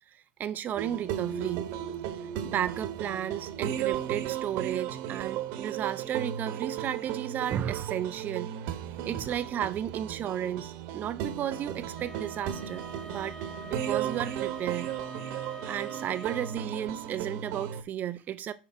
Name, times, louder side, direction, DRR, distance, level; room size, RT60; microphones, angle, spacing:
voice 1, 0.1-1.7 2.4-8.5 9.0-13.4 13.6-14.9 15.3-18.5, right 10 dB, 30° right, 0.6 m, -33 dB
Electronic music intro, 0.8-17.8, right 10 dB, 50° right, 1.2 m, -35 dB
Wind instrument woodwind instrument, 11.9-16.7, right 1 dB, 10° left, 0.8 m, -45 dB
6.3 x 4.9 x 5.8 m
hypercardioid pair, 95°, 6 cm